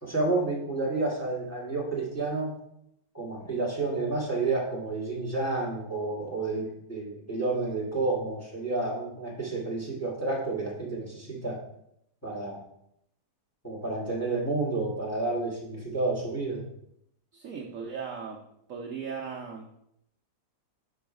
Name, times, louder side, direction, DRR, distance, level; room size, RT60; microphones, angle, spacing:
voice 1, 0.0-2.5 3.1-11.6 12.2-12.6 13.6-16.7, right 3 dB, 10° left, -4 dB, 1.4 m, -30 dB
voice 2, 17.3-18.4 18.7-19.7, right 6 dB, 65° right, 0 dB, 0.9 m, -37 dB
5.0 x 4.6 x 4.8 m, 0.75 s
omnidirectional pair, 1.8 m